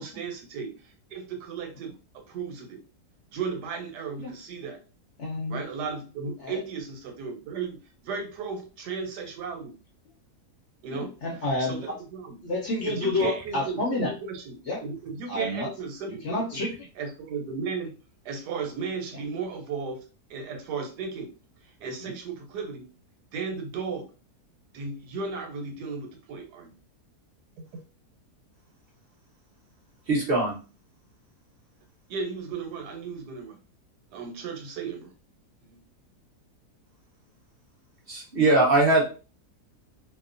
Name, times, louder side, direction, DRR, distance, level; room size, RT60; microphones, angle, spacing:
voice 1, 0.0-1.9 2.3-2.8 3.3-4.8 5.5-7.8 8.0-9.7 10.8-11.2 11.6-12.4 12.8-13.8 14.3-16.6 17.0-17.9 18.2-20.0 20.3-21.3 21.6-22.8 23.3-24.0 24.7-26.7 27.6-27.8 32.1-33.6 34.1-35.1 35.6-35.8, right 5 dB, 85° right, 3 dB, 1.3 m, -35 dB
voice 2, 5.2-5.6 6.4-6.6 10.9-12.0 12.4-14.2 14.7-14.8 15.3-15.7 16.2-16.9 19.1-19.2 22.0-22.1, left 2 dB, 60° left, -2 dB, 0.8 m, -29 dB
voice 3, 30.1-30.6 38.1-39.0, right 2 dB, 45° right, -2 dB, 0.8 m, -21 dB
2.8 x 2.1 x 2.4 m, 0.34 s
omnidirectional pair, 1.7 m